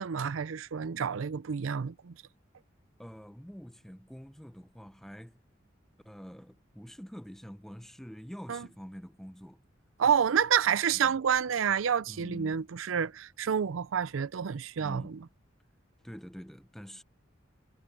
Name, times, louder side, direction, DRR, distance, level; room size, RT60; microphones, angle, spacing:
voice 1, 0.0-2.1 8.5-8.7 10.0-15.2, right 7 dB, 85° right, 0.5 m, -29 dB
voice 2, 3.0-5.4 6.0-9.6 11.0-11.1 12.1-12.7 14.8-15.2 16.0-17.0, equal, ahead, 0.7 m, -46 dB
head